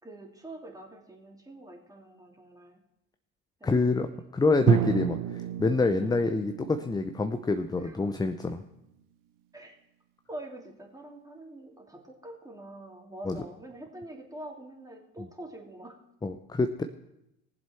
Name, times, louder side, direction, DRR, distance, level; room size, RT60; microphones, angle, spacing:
voice 1, 0.0-2.8 3.6-4.1 5.9-6.2 7.8-8.0 9.5-9.7 10.3-16.0, right 1 dB, 10° right, 0 dB, 2.6 m, -45 dB
voice 2, 3.6-8.6 13.2-13.4 16.2-16.8, left 3 dB, 10° left, 8 dB, 0.6 m, -27 dB
Drum, 4.7-8.4, right 10 dB, 50° right, 0.8 m, -31 dB
19.0 x 7.5 x 4.4 m, 0.85 s
hypercardioid pair, 60°, 42 cm